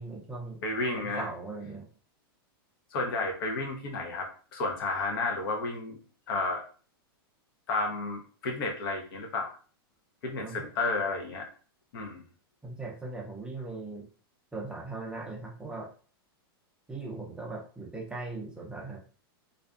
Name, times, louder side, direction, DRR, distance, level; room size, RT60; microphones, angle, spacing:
voice 1, 0.0-0.6 0.9-1.8 10.4-10.7 12.6-14.1 14.5-15.9 16.9-19.0, right 3 dB, 5° right, -2 dB, 0.5 m, -39 dB
voice 2, 0.6-1.3 2.9-6.0 6.3-6.6 7.7-9.5 10.2-11.5 11.9-12.2, left 3 dB, 65° left, 2 dB, 0.8 m, -32 dB
2.5 x 2.3 x 2.3 m, 0.39 s
hypercardioid pair, 130°, 13 cm